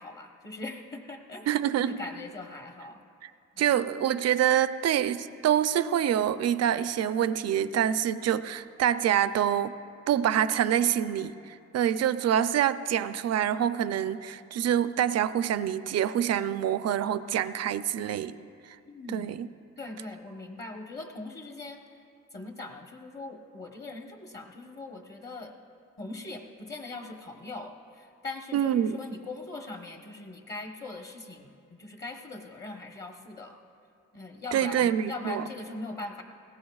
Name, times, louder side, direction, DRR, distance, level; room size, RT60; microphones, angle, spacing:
voice 1, 0.0-1.5 1.9-3.0 3.5-3.7 18.8-19.4 19.8-21.8 22.3-25.5 26.0-31.5 31.8-33.6 34.1-36.2, left 2 dB, 35° left, 2 dB, 1.1 m, -41 dB
voice 2, 1.5-2.0 3.2-3.3 3.6-9.7 10.1-18.4 19.1-19.5 28.5-29.0 34.5-35.4, right 10 dB, 60° right, 13 dB, 0.5 m, -26 dB
21.0 x 17.5 x 2.4 m, 2.4 s
cardioid pair, 90°, 30 cm